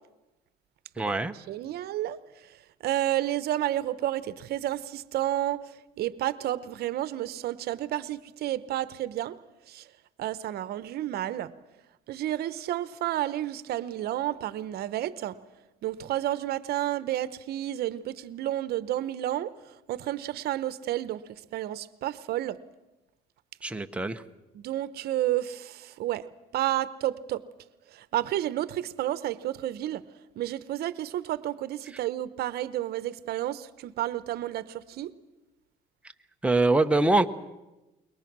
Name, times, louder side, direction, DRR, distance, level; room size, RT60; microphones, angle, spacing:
voice 1, 1.0-1.3 23.6-24.2 36.4-37.3, right 2 dB, 5° right, 7 dB, 1.0 m, -23 dB
voice 2, 1.5-2.2 2.8-5.6 6.0-9.4 9.7-9.8 10.2-11.5 12.1-15.4 15.8-19.5 19.9-22.6 24.5-26.2 26.5-27.4 27.9-30.0 30.4-35.1, right 13 dB, 70° right, 16 dB, 0.9 m, -31 dB
26.5 x 22.5 x 6.1 m, 1.0 s
cardioid pair, 110°, 17 cm